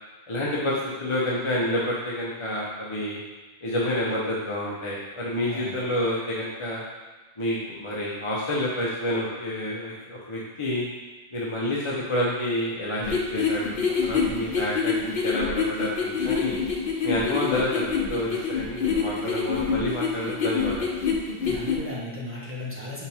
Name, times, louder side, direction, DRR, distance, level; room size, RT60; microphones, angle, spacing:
voice 1, 0.3-3.2 3.6-6.8 7.4-10.9 11.3-16.6 17.0-20.9, left 1 dB, 30° left, -6 dB, 0.8 m, -28 dB
voice 2, 5.4-5.8 21.4-23.1, left 1 dB, 10° right, -6 dB, 1.3 m, -36 dB
sound 1, 13.0-21.8, left 6 dB, 60° left, 1.0 m, -26 dB
5.5 x 5.1 x 3.5 m, 1.2 s
omnidirectional pair, 1.1 m